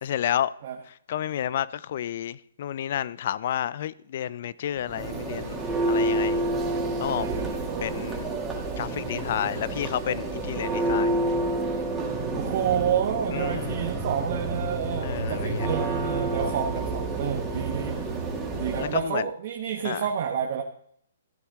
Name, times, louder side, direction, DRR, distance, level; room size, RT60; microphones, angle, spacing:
voice 1, 0.0-0.5 1.1-6.4 7.0-7.3 7.8-8.2 8.8-11.2 13.3-13.8 15.0-15.7 18.8-19.3 19.8-20.0, left 10 dB, 50° left, 0.5 m, -30 dB
Church bell, 4.8-19.0, right 2 dB, 15° right, 2.4 m, -29 dB
voice 2, 7.2-8.2 12.4-18.0 18.6-20.6, right 8 dB, 50° right, 1.3 m, -29 dB
14.5 x 8.6 x 3.7 m
hypercardioid pair, 130°, 0 cm